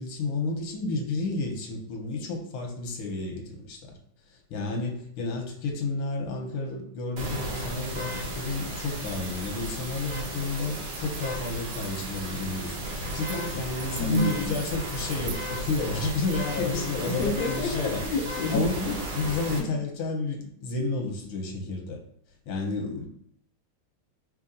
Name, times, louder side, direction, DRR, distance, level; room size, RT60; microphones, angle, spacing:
voice 1, 0.0-4.0 4.5-18.0 18.5-22.0 22.5-23.1, left 3 dB, 85° left, 1 dB, 1.7 m, -31 dB
sound 1, 7.2-19.6, equal, 65° right, 1.5 m, -34 dB
sound 2, 8.9-17.4, right 7 dB, 85° right, 0.9 m, -47 dB
voice 2, 14.0-14.6 16.6-18.6 19.6-19.8, left 2 dB, 70° left, 3 dB, 1.2 m, -30 dB
5.6 x 3.1 x 2.5 m, 0.67 s
omnidirectional pair, 2.3 m